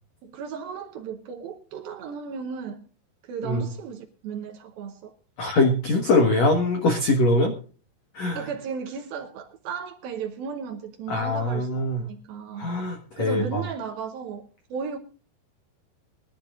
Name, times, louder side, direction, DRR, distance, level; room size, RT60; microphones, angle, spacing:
voice 1, 0.2-2.9 3.2-5.1 8.4-11.7 12.1-12.7 13.2-15.0, right 6 dB, 75° right, 2.2 m, -35 dB
voice 2, 5.4-7.5 8.1-8.5 11.1-12.0 12.6-13.6, left 2 dB, 90° left, 1.5 m, -22 dB
22.0 x 12.0 x 2.5 m
omnidirectional pair, 5.5 m